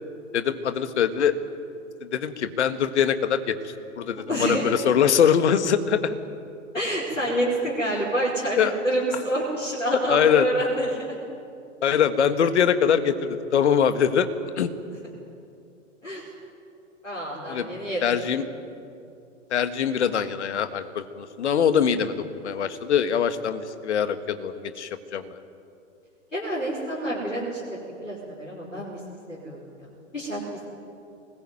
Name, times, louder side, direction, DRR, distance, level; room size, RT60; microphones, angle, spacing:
voice 1, 0.3-1.3 2.0-6.1 8.6-8.8 10.1-10.5 11.8-14.3 14.6-14.7 17.5-17.7 18.0-18.4 19.5-25.4, left 8 dB, 65° left, 10 dB, 1.7 m, -23 dB
voice 2, 4.3-4.6 6.7-11.1 16.0-16.2 17.0-18.0 26.3-29.0 29.3-29.9 30.1-30.4, right 1 dB, 90° left, -5 dB, 5.1 m, -28 dB
24.0 x 20.5 x 9.3 m, 2.6 s
figure-of-eight pair, 105°, 38 cm